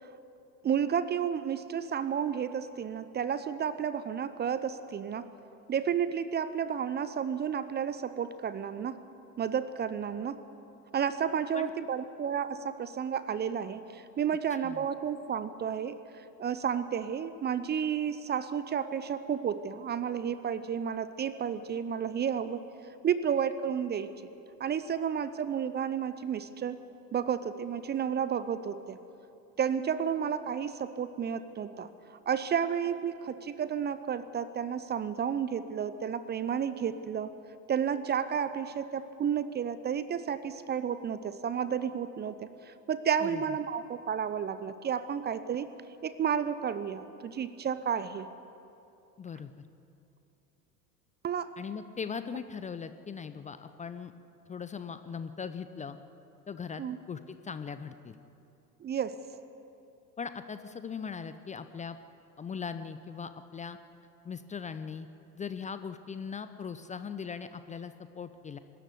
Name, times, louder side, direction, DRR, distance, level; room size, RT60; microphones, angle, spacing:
voice 1, 0.6-5.3 5.7-9.0 9.4-10.4 10.9-22.6 23.0-24.3 24.6-26.8 27.1-29.0 29.6-37.3 37.7-45.7 46.0-48.3 51.2-51.6 56.8-57.0 58.8-59.2, right 8 dB, 20° right, 14 dB, 0.8 m, -32 dB
voice 2, 49.2-49.5 51.6-54.1 54.5-56.0 56.5-58.1 60.2-62.0 62.4-63.8 64.2-65.1 65.3-68.6, left 6 dB, 15° left, 11 dB, 0.7 m, -39 dB
24.0 x 13.5 x 9.6 m, 2.7 s
figure-of-eight pair, 80°, 47 cm